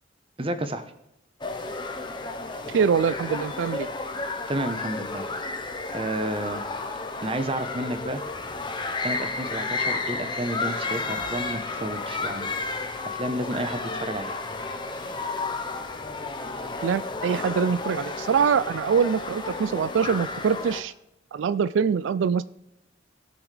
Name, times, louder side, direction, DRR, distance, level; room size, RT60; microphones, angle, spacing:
voice 1, 0.4-0.8 4.5-5.3 5.9-6.6 7.2-8.2 9.0-14.4, right 1 dB, 30° right, 9 dB, 0.9 m, -31 dB
sound 1, 1.4-20.8, left 3 dB, 25° left, 0.9 m, -32 dB
voice 2, 2.7-3.9 16.8-20.9 21.3-22.4, right 6 dB, 75° right, 15 dB, 0.3 m, -24 dB
18.0 x 6.2 x 3.4 m, 0.84 s
head